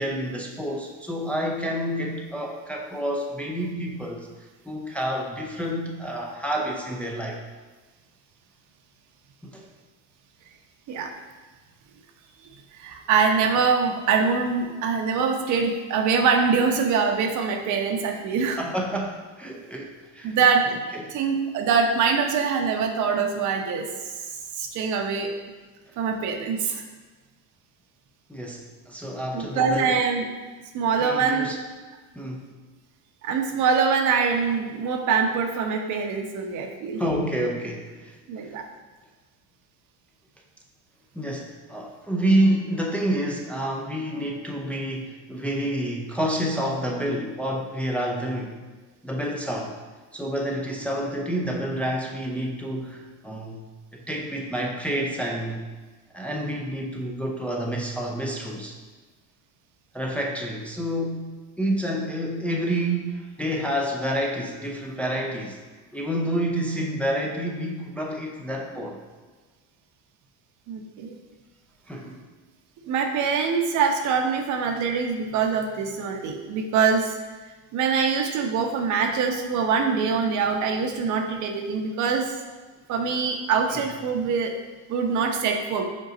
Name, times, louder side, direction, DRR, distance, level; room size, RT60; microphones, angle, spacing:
voice 1, 0.0-4.3 4.7-7.4 9.4-9.7 18.4-20.4 20.9-21.2 28.3-30.0 31.0-31.6 32.1-32.5 37.0-38.2 38.4-38.5 41.1-48.6 49.0-49.7 50.1-53.6 53.9-55.6 56.1-58.8 59.9-65.6 65.9-69.0 71.9-72.3 83.7-83.8, right 1 dB, 5° left, -1 dB, 0.5 m, -28 dB
voice 2, 12.8-18.6 20.2-20.7 21.1-23.9 24.5-25.3 26.0-26.8 29.3-30.3 30.7-31.5 33.2-37.0 38.3-38.6 70.7-71.2 72.9-77.2 77.7-82.3 82.9-84.5 84.9-85.8, right 5 dB, 60° right, 4 dB, 0.9 m, -24 dB
5.4 x 3.8 x 5.0 m, 1.3 s
cardioid pair, 135°, 34 cm